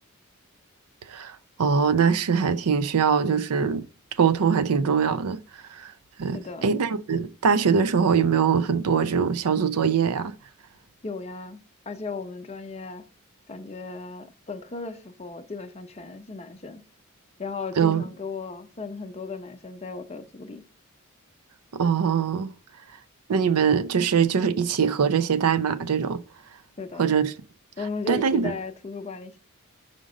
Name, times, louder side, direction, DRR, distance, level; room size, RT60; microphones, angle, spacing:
voice 1, 1.1-3.8 4.2-5.4 5.7-5.9 6.2-10.3 17.8-18.0 21.7-22.5 23.3-26.2 27.0-27.3 28.1-28.5, right 6 dB, 85° right, 0.5 m, -22 dB
voice 2, 6.3-6.8 11.0-11.6 11.9-13.0 13.5-16.8 17.4-20.6 26.8-27.1 27.8-29.4, left 4 dB, 30° left, 0.6 m, -36 dB
5.2 x 5.1 x 3.7 m
head